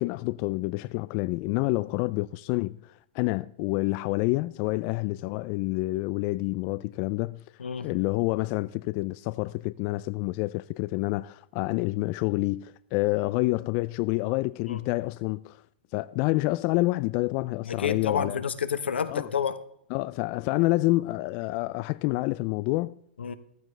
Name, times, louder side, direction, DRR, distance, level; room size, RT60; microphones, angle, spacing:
voice 1, 0.0-7.4 7.8-15.6 15.9-18.4 19.1-19.3 19.9-22.9, left 21 dB, 40° left, 0.3 m, -28 dB
voice 2, 7.6-7.9 14.7-14.8 17.7-19.6 23.2-23.3, left 7 dB, 90° left, 1.1 m, -29 dB
14.5 x 13.0 x 3.3 m
hypercardioid pair, 125°, 6 cm